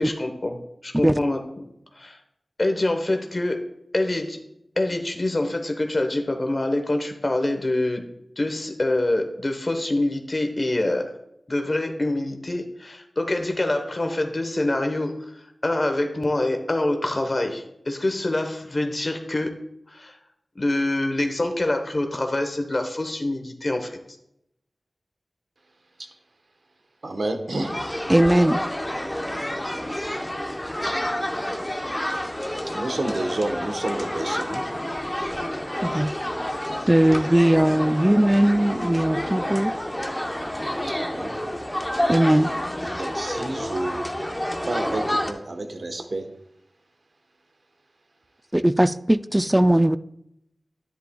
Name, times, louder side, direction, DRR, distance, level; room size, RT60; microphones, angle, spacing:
voice 1, 0.0-1.7 1.9-2.2 2.6-3.6 3.9-4.4 4.8-8.1 8.4-11.1 11.5-15.3 15.6-19.6 19.9-20.2 20.5-24.0, left 1 dB, 45° left, 5 dB, 1.1 m, -25 dB
voice 2, 27.0-27.8 32.7-34.6 41.0-41.4 42.9-44.1 44.7-46.3, right 2 dB, 70° right, 6 dB, 1.1 m, -30 dB
sound 1, 27.5-45.3, equal, 10° left, 0.9 m, -29 dB
voice 3, 28.1-28.6 35.8-36.1 36.9-39.7 42.1-42.5 48.5-50.0, right 1 dB, 15° right, 13 dB, 0.4 m, -19 dB
10.5 x 10.0 x 2.3 m, 0.79 s
wide cardioid pair, 50°, 0 cm